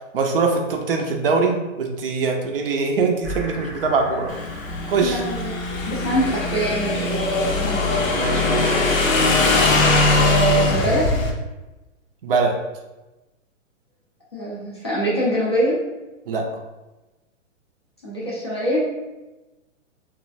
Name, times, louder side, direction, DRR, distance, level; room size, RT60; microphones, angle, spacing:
voice 1, 0.1-4.3 4.9-5.2 8.1-9.1 12.2-12.6 16.3-16.5, right 4 dB, 50° right, 3 dB, 0.4 m, -22 dB
sound 1, 3.2-11.1, right 1 dB, 5° right, 0.7 m, -38 dB
Motorcycle / Engine, 4.3-11.3, left 2 dB, 90° left, 0.7 m, -21 dB
voice 2, 5.0-5.5 5.9-8.1 10.1-11.1 14.3-15.7 18.0-18.8, right 1 dB, 20° left, -7 dB, 0.3 m, -24 dB
3.0 x 2.4 x 2.5 m, 1.1 s
hypercardioid pair, 165°, 39 cm